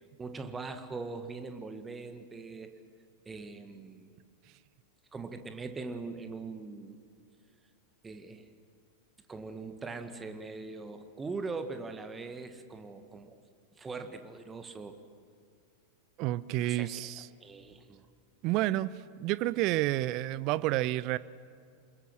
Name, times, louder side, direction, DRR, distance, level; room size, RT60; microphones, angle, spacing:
voice 1, 0.2-2.8 3.3-4.1 5.1-7.0 8.0-8.5 9.3-13.4 13.8-15.0 16.6-17.1 17.4-18.1, right 4 dB, 15° right, 7 dB, 1.8 m, -41 dB
voice 2, 16.2-17.3 18.4-21.2, right 16 dB, 40° right, 18 dB, 0.6 m, -30 dB
27.5 x 21.5 x 6.3 m, 2.3 s
figure-of-eight pair, 90°, 0 cm